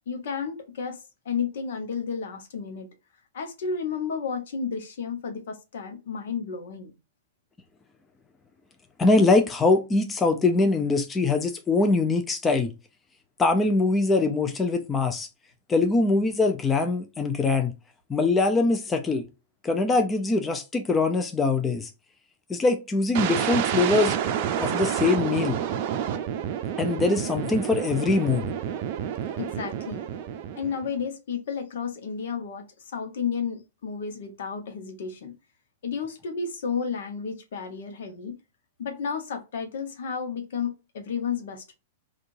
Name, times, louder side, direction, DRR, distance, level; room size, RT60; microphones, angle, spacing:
voice 1, 0.1-2.9 3.3-6.9 29.4-30.1 30.5-32.7 32.9-35.3 35.8-38.4 38.8-41.7, left 6 dB, 65° left, 0.8 m, -32 dB
voice 2, 9.0-12.7 13.4-15.3 15.7-17.7 18.1-19.2 19.6-21.9 22.5-24.1 24.6-25.6 26.8-28.5, left 3 dB, 15° left, 0.5 m, -23 dB
sound 1, 23.1-31.0, right 9 dB, 50° right, 0.5 m, -29 dB
3.7 x 2.4 x 2.5 m
figure-of-eight pair, 105°, 0 cm